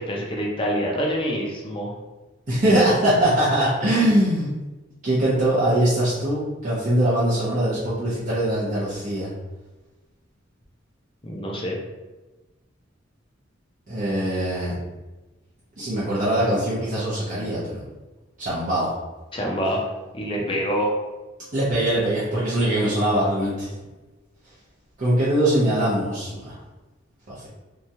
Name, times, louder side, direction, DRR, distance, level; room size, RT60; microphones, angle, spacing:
voice 1, 0.0-1.9 11.2-11.8 19.3-19.9 20.1-20.9, equal, 25° left, -2 dB, 0.5 m, -26 dB
voice 2, 2.5-4.5 5.0-9.3 13.9-14.7 15.8-17.8 18.4-18.9 21.5-23.7 25.0-26.5 27.3-27.5, right 1 dB, 40° right, -9 dB, 0.7 m, -22 dB
2.9 x 2.3 x 2.7 m, 1.1 s
head